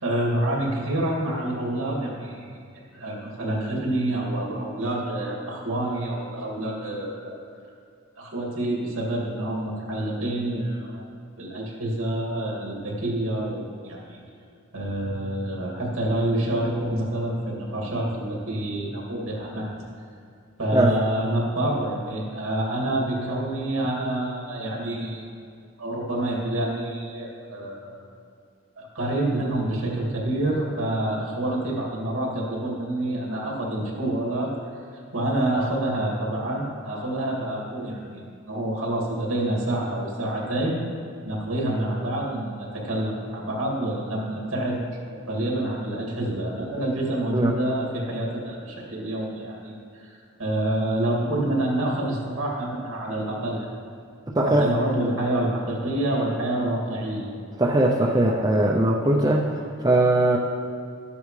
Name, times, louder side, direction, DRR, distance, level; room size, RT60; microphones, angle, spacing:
voice 1, 0.0-2.6 2.9-7.4 8.2-11.0 11.4-14.2 14.7-19.8 20.6-25.3 25.8-28.0 28.8-34.5 34.9-40.8 41.3-44.8 45.3-53.7 54.5-57.3, right 1 dB, 65° right, -2 dB, 2.3 m, -27 dB
voice 2, 54.3-54.7 57.6-60.4, right 1 dB, 15° right, -2 dB, 0.5 m, -20 dB
12.5 x 8.5 x 3.2 m, 2.4 s
head